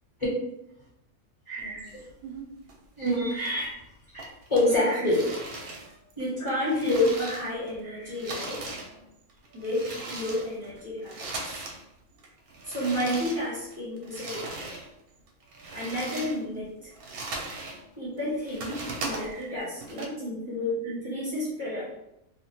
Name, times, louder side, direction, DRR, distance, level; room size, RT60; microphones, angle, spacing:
voice 1, 1.5-1.8 3.0-3.8 4.1-5.5 6.2-8.7 9.5-11.6 12.7-14.6 15.7-16.7 18.0-22.0, left 1 dB, 25° left, -9 dB, 0.9 m, -29 dB
sound 1, 1.6-2.7 3.1-3.9 4.2-7.8 8.0-11.8 12.1-14.9 15.3-17.8 18.2-20.1, right 3 dB, 80° right, 1.0 m, -39 dB
2.6 x 2.1 x 2.7 m, 0.83 s
omnidirectional pair, 1.5 m